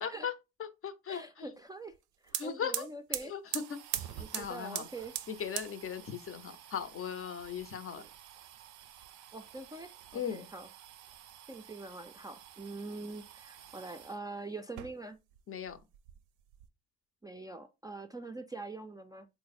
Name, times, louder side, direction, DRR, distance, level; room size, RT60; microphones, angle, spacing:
voice 1, 0.0-0.3 0.6-1.5 2.3-2.9 3.2-4.9 5.3-8.0 10.1-10.5 15.5-15.8, left 7 dB, 45° left, 0.6 m, -38 dB
voice 2, 1.1-1.9 2.2-3.3 4.2-5.1 8.0-8.1 9.3-10.7 11.5-15.2 17.2-19.3, right 2 dB, 15° right, 0.3 m, -44 dB
sound 1, 1.9-2.0 2.2-14.2 14.6-15.4 15.7-16.7, right 12 dB, 85° right, 0.5 m, -44 dB
3.3 x 2.1 x 4.0 m
cardioid pair, 90°, 30 cm